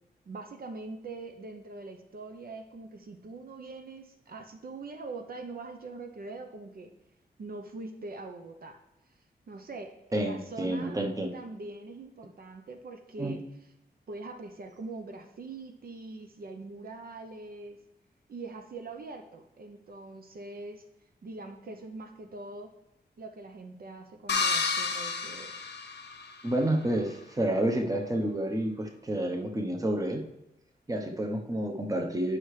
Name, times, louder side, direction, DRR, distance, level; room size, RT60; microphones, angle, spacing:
voice 1, 0.3-6.9 7.4-8.8 9.5-11.0 11.3-13.4 14.1-17.8 18.3-20.8 21.2-22.7 23.2-25.5, right 3 dB, 60° right, 6 dB, 0.7 m, -43 dB
voice 2, 10.1-11.3 13.2-13.4 26.4-30.2 30.9-32.4, right 1 dB, 20° right, 4 dB, 0.8 m, -29 dB
sound 1, 24.3-26.5, left 4 dB, 85° left, 0.9 m, -30 dB
9.9 x 5.6 x 3.2 m, 0.90 s
wide cardioid pair, 120°, 18 cm